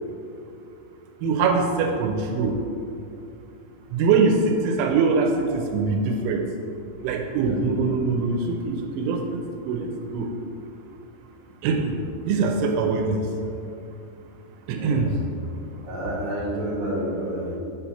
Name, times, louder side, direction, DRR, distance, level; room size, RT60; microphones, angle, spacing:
voice 1, 1.2-2.5 3.9-6.4 7.0-9.9 10.1-10.3 11.6-11.9 12.3-13.2 14.7-15.1, right 4 dB, 85° right, 3 dB, 2.9 m, -23 dB
voice 2, 7.4-7.9 14.7-15.1 15.8-17.6, right 1 dB, 60° right, -6 dB, 2.1 m, -30 dB
7.5 x 2.8 x 5.6 m, 2.6 s
omnidirectional pair, 5.4 m